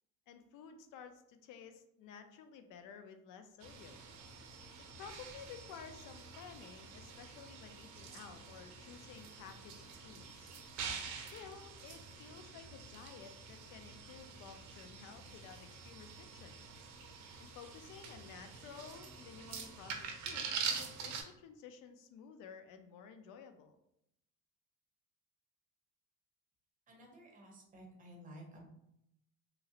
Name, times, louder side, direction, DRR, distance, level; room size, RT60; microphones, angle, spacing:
voice 1, 0.3-4.0 4.8-10.5 11.2-16.6 17.4-23.8, left 6 dB, 70° left, 8 dB, 0.5 m, -53 dB
sound 1, 3.6-21.2, right 5 dB, 60° right, 0.5 m, -46 dB
voice 2, 26.9-28.7, right 1 dB, 25° right, 0 dB, 0.8 m, -54 dB
3.0 x 2.4 x 2.8 m, 0.78 s
cardioid pair, 135°, 32 cm